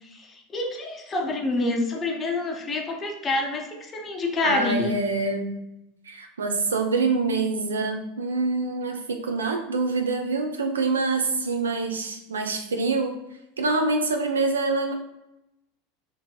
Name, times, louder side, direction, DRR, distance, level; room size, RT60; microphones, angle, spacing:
voice 1, 0.0-5.0, left 2 dB, 25° left, 2 dB, 0.5 m, -27 dB
voice 2, 4.4-5.5 6.1-13.1 13.6-14.9, right 3 dB, 80° right, 4 dB, 0.4 m, -25 dB
2.6 x 2.5 x 2.3 m, 0.89 s
figure-of-eight pair, 80°, 0 cm